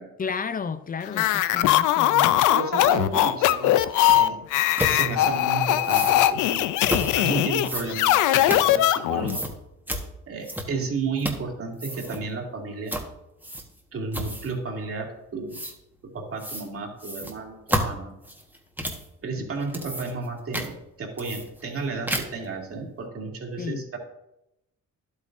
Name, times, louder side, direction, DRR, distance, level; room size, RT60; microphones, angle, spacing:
voice 1, 0.2-2.4 23.6-23.9, left 5 dB, 30° left, 0.6 m, -32 dB
sound 1, 1.1-9.4, left 13 dB, 85° left, 0.5 m, -21 dB
voice 2, 2.3-4.4 4.8-6.7 7.1-9.4 10.3-12.9 13.9-15.6 16.1-18.1 19.2-24.0, right 4 dB, 50° right, 2.3 m, -32 dB
sound 2, 4.1-4.2 4.8-5.0 5.8-6.2 6.8-7.1 7.6-9.0 9.3-9.5 9.9-10.0 10.4-10.9 11.2-11.5 11.7-12.2 12.9-13.1 13.4-13.8 14.1-14.6 15.5-15.7 16.4-16.7 17.0-19.1 19.6-20.3 20.5-20.7 21.2-21.8 22.1-22.5, right 1 dB, 5° right, 1.4 m, -31 dB
11.0 x 8.4 x 2.6 m
cardioid pair, 90°, 30 cm